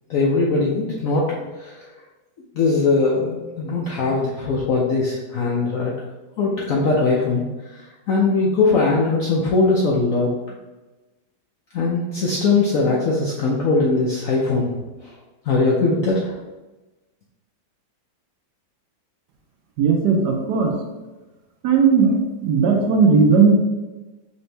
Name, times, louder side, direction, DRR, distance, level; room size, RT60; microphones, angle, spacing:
voice 1, 0.1-1.9 2.5-6.0 6.4-10.3 11.7-14.7 15.0-15.1 15.4-16.3, left 3 dB, 75° left, -4 dB, 0.8 m, -20 dB
voice 2, 19.8-20.7 21.6-22.2 22.4-23.6, right 5 dB, 70° right, 1 dB, 1.1 m, -16 dB
4.3 x 2.8 x 3.2 m, 1.1 s
omnidirectional pair, 2.1 m